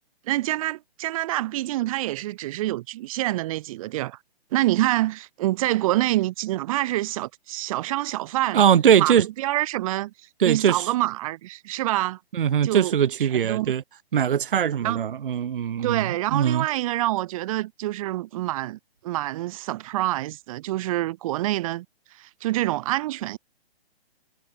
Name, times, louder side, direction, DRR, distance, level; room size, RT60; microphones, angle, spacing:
voice 1, 0.3-4.2 4.5-8.6 9.0-10.1 10.4-12.2 12.6-12.9 13.2-13.7 14.8-15.0 15.8-18.8 19.0-21.9 22.2-23.4, right 16 dB, 35° right, 1.8 m, -26 dB
voice 2, 8.5-9.3 10.4-10.9 12.3-13.8 14.1-16.7, right 9 dB, 60° right, 1.0 m, -21 dB
figure-of-eight pair, 135°, 31 cm